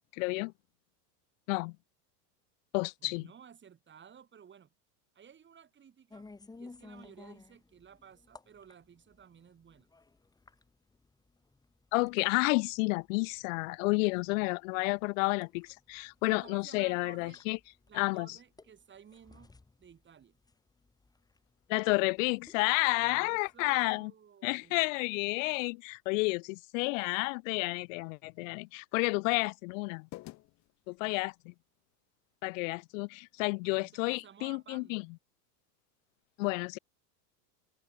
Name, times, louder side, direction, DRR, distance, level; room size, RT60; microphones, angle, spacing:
voice 1, 0.1-0.5 1.5-1.8 2.7-3.3 11.9-17.6 17.9-18.4 21.7-24.1 24.4-30.1 30.9-31.5 32.4-35.0 36.4-36.8, left 28 dB, 55° left, 0.6 m, -31 dB
voice 2, 3.0-4.7 5.1-6.3 6.6-9.9 16.3-17.4 17.9-19.5 19.8-20.4 23.0-25.0 33.7-35.1, right 8 dB, 20° right, 7.4 m, -55 dB
sound 1, 6.1-23.7, left 3 dB, 10° left, 2.1 m, -57 dB
sound 2, 21.1-31.4, left 19 dB, 35° left, 1.0 m, -59 dB
supercardioid pair, 135°, 49 cm